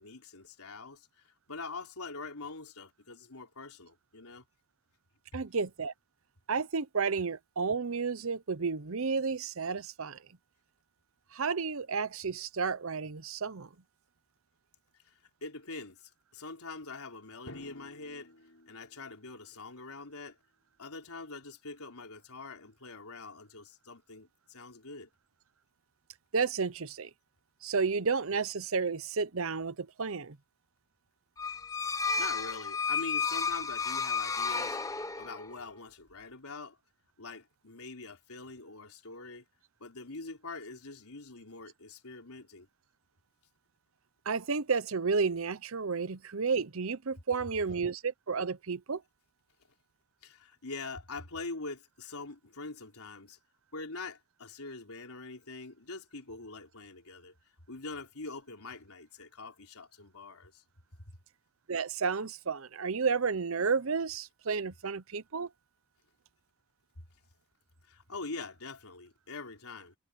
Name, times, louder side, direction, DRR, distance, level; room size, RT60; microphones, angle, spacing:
voice 1, 0.0-4.5 15.1-18.3 18.7-20.4 20.8-25.1 31.8-34.8 35.2-36.8 37.2-39.4 39.8-42.7 50.2-53.4 53.7-57.3 57.7-60.6 67.8-69.9, left 3 dB, 85° left, 3.8 m, -44 dB
voice 2, 5.3-5.9 6.5-10.2 11.3-13.7 26.3-27.1 27.6-30.4 44.3-49.0 61.7-65.5, right 5 dB, 70° right, 0.8 m, -31 dB
Drum, 17.5-20.0, left 1 dB, 65° left, 6.9 m, -53 dB
sound 1, 31.4-35.5, left 5 dB, 15° left, 0.8 m, -32 dB
head